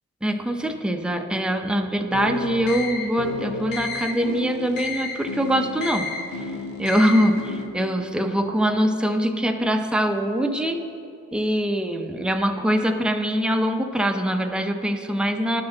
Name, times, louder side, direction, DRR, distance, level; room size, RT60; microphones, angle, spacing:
voice 1, 0.2-6.1 6.4-6.5 6.8-10.8 11.3-15.6, equal, 5° right, 5 dB, 0.6 m, -23 dB
sound 1, 2.1-7.7, left 3 dB, 90° left, 0.8 m, -31 dB
10.5 x 6.1 x 3.8 m, 2.5 s
cardioid pair, 60°, 33 cm